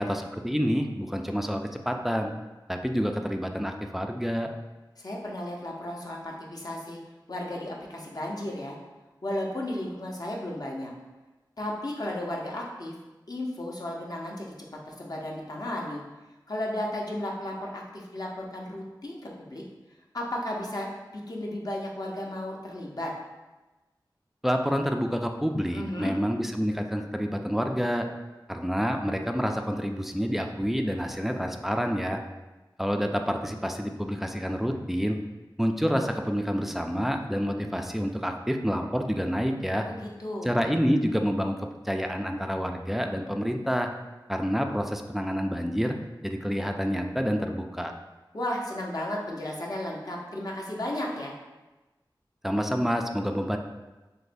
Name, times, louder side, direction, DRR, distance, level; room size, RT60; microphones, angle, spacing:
voice 1, 0.0-2.3 2.7-4.5 24.4-28.1 28.5-32.2 32.8-35.2 35.6-39.9 40.4-43.9 44.3-46.0 46.2-47.9 52.4-53.6, equal, 5° right, 4 dB, 0.4 m, -28 dB
voice 2, 5.0-7.0 7.3-8.8 9.2-10.9 11.6-12.9 13.3-14.5 14.8-16.0 16.5-19.6 20.1-20.9 21.1-23.1 25.7-26.1 39.8-40.5 48.3-51.3, left 1 dB, 50° left, -2 dB, 0.8 m, -34 dB
6.4 x 2.2 x 2.6 m, 1.1 s
wide cardioid pair, 45°, 8 cm